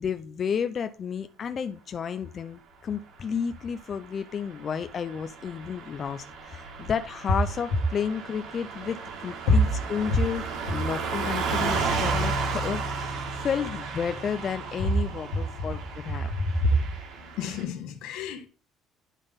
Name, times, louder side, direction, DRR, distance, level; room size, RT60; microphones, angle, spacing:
voice 1, 0.0-9.0 9.2-10.4 10.7-16.3, left 7 dB, 30° left, 0.4 m, -32 dB
Car passing by / Truck, 4.6-17.6, right 4 dB, 55° right, 1.8 m, -33 dB
voice 2, 17.4-18.5, left 1 dB, 75° left, 1.5 m, -24 dB
9.9 x 3.7 x 5.2 m
cardioid pair, 180°, 0 cm